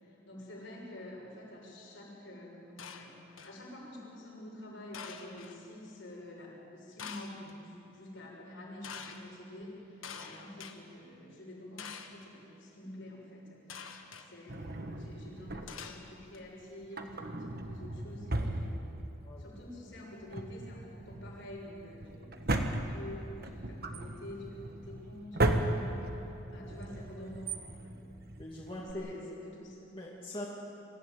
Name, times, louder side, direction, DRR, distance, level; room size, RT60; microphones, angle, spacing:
voice 1, 0.0-18.9 19.4-26.1 26.5-28.0 28.8-29.8, left 1 dB, 70° left, -3 dB, 7.0 m, -48 dB
sound 1, 2.8-3.6 4.9-5.6 7.0-7.5 8.8-9.2 10.0-10.7 11.8-12.3 13.7-14.3 15.7-16.4, left 6 dB, 85° left, 1.6 m, -46 dB
Drawer open or close, 14.5-16.0 16.8-19.3 19.6-19.7 20.2-28.9, right 2 dB, 50° right, 1.4 m, -36 dB
voice 2, 28.4-29.2 29.9-30.5, left 1 dB, 25° left, -5 dB, 2.5 m, -42 dB
24.5 x 15.0 x 9.4 m, 2.8 s
head